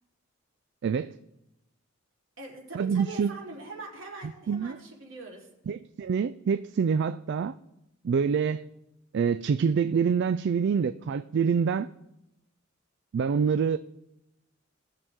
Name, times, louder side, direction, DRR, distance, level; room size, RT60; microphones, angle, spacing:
voice 1, 0.8-1.1 2.7-3.3 4.5-4.8 5.7-7.5 8.0-8.6 9.1-11.9 13.1-13.8, right 6 dB, 60° right, 12 dB, 0.3 m, -26 dB
voice 2, 2.4-5.5, right 3 dB, 75° right, -3 dB, 3.6 m, -42 dB
19.0 x 6.8 x 3.6 m, 0.91 s
head